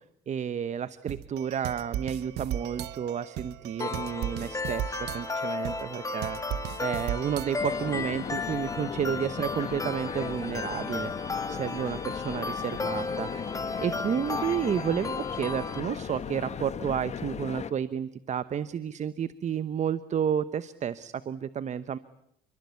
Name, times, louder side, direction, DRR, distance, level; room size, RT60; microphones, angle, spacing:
voice 1, 0.3-13.3 13.8-22.0, right 8 dB, 45° right, 15 dB, 1.0 m, -31 dB
sound 1, 1.1-7.9, right 11 dB, 80° right, 1.2 m, -37 dB
sound 2, 3.8-15.8, left 4 dB, 20° left, 2.2 m, -35 dB
sound 3, 7.6-17.7, left 7 dB, 40° left, 1.4 m, -37 dB
29.5 x 23.0 x 8.4 m, 0.75 s
cardioid pair, 110°, 17 cm